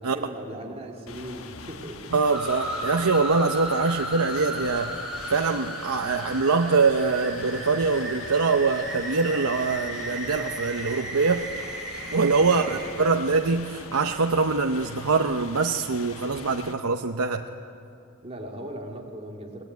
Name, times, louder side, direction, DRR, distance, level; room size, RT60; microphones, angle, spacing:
voice 1, 0.0-2.1 12.4-12.9 18.2-19.6, right 1 dB, 30° right, 1 dB, 2.6 m, -38 dB
sound 1, 1.1-16.7, left 4 dB, 75° left, 1.2 m, -43 dB
voice 2, 2.1-5.0 5.3-11.5 12.1-17.5, right 4 dB, 90° right, 4 dB, 0.8 m, -24 dB
sound 2, 2.3-12.9, right 1 dB, ahead, 5.1 m, -35 dB
24.5 x 19.5 x 9.4 m, 2.7 s
head